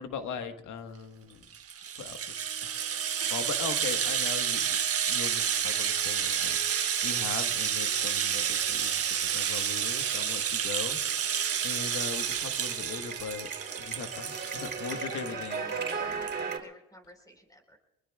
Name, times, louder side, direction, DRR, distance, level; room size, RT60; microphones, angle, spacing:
voice 1, 0.0-1.4 2.0-4.8 5.1-11.2 11.6-13.5 13.8-15.7, left 6 dB, 85° left, 7 dB, 1.6 m, -39 dB
Rattle (instrument), 1.4-15.6 15.9-16.0 16.3-16.4, right 8 dB, 50° right, 1.3 m, -30 dB
sound 1, 2.4-16.6, right 5 dB, 35° right, 3.6 m, -41 dB
voice 2, 14.9-17.8, equal, 10° left, 4 dB, 4.3 m, -48 dB
25.5 x 20.5 x 2.4 m, 0.97 s
cardioid pair, 90°, 30 cm